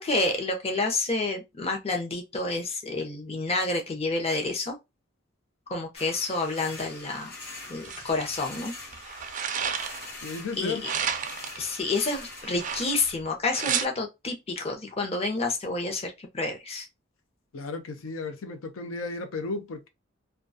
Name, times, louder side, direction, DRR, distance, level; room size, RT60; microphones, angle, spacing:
voice 1, 0.0-4.8 5.7-7.3 7.7-8.7 10.6-10.9 11.6-16.9, left 2 dB, 30° left, 0.6 m, -29 dB
sound 1, 5.9-13.1, left 3 dB, 50° left, 0.9 m, -43 dB
sound 2, 7.8-8.2 8.9-10.1 10.8-11.6 12.4-13.1 13.5-13.9, right 7 dB, 40° right, 0.3 m, -31 dB
voice 2, 10.2-10.9 17.5-19.9, left 3 dB, 85° left, 0.5 m, -34 dB
2.3 x 2.2 x 2.4 m
head